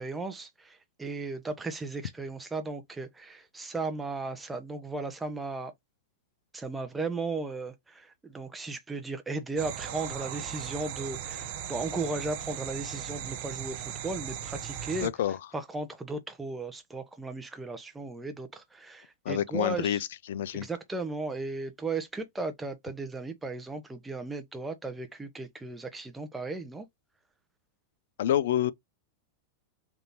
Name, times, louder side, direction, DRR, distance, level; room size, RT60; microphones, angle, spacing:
voice 1, 0.0-5.7 6.5-15.1 15.5-20.0 20.5-26.9, right 3 dB, 10° right, 0.7 m, -36 dB
sound 1, 9.6-15.1, right 10 dB, 55° right, 0.9 m, -38 dB
voice 2, 15.0-15.4 19.3-20.0 20.3-20.7 28.2-28.7, left 11 dB, 75° left, 0.4 m, -27 dB
3.5 x 2.8 x 4.0 m
supercardioid pair, 140°, 0 cm